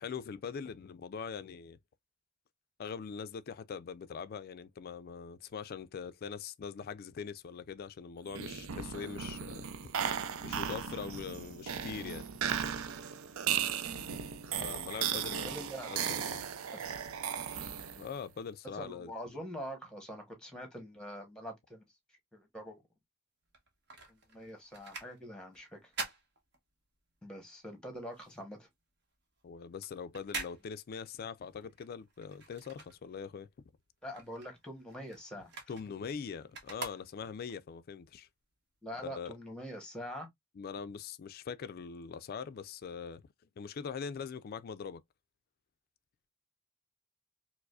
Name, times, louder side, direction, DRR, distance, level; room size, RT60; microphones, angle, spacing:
voice 1, 0.0-1.8 2.8-9.7 10.4-12.3 14.6-15.5 15.9-16.5 18.0-19.4 29.4-33.5 35.7-38.3 39.0-39.3 40.6-43.2 43.6-45.0, left 6 dB, 45° left, 0.3 m, -42 dB
sound 1, 8.3-18.2, right 8 dB, 80° right, 0.5 m, -36 dB
voice 2, 15.1-15.9 16.7-16.9 18.8-21.8 22.3-22.8 24.1-25.8 27.2-28.7 34.0-35.5 38.8-40.3, equal, 5° left, 1.0 m, -44 dB
sound 2, 23.4-27.2 27.5-33.5 33.8-37.6 38.1-38.2, right 3 dB, 55° right, 1.0 m, -46 dB
4.7 x 2.0 x 2.3 m
head